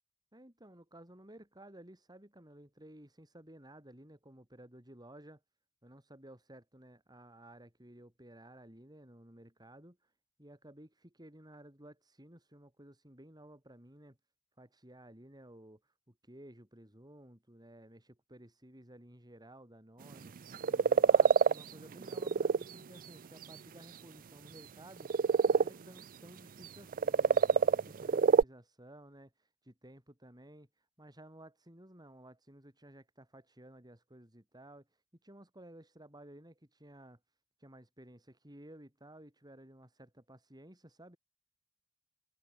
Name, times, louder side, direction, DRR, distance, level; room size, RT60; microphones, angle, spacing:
voice 1, 0.3-5.4 5.8-10.1 10.4-14.2 14.6-34.9 35.2-37.2 37.6-41.2, right 1 dB, 20° right, 5.7 m, -55 dB
sound 1, 20.1-20.2 20.5-21.6 22.0-22.6 23.4-23.5 25.0-25.7 26.6-26.7 26.9-28.4, right 5 dB, 40° right, 0.4 m, -25 dB
head